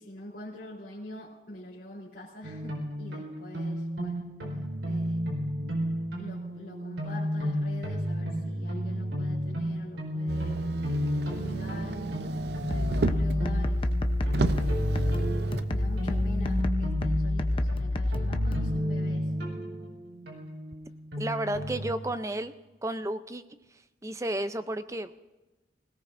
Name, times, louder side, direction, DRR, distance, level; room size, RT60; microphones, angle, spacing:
voice 1, 0.0-4.2 4.8-5.2 6.2-10.7 11.3-12.0 12.7-13.9 14.2-15.1 15.7-19.3, left 1 dB, 60° left, -8 dB, 3.3 m, -45 dB
sound 1, 2.4-21.9, equal, 85° right, 4.3 m, -33 dB
Motor vehicle (road), 10.3-13.4 13.9-14.0 14.3-15.7 16.6-16.7, right 3 dB, 65° right, 0.6 m, -33 dB
sound 2, 12.7-18.7, left 1 dB, 30° left, 0.7 m, -28 dB
voice 2, 21.2-22.5 22.8-23.4 24.0-25.3, right 1 dB, 15° right, 11 dB, 0.5 m, -32 dB
24.5 x 17.5 x 2.6 m, 1.1 s
head